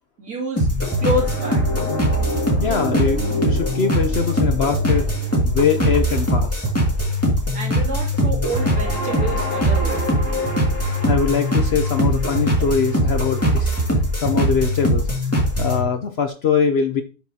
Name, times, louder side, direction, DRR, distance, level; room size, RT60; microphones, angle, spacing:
voice 1, 0.2-0.7 1.0-1.7 7.5-10.0, equal, 60° right, -2 dB, 3.0 m, -27 dB
sound 1, 0.6-15.8, equal, 10° left, 2.1 m, -21 dB
voice 2, 2.6-5.1 5.4-6.7 11.0-13.7 14.2-15.1 15.6-17.0, left 6 dB, 60° left, 7 dB, 0.6 m, -22 dB
12.0 x 5.7 x 2.8 m, 0.35 s
omnidirectional pair, 1.7 m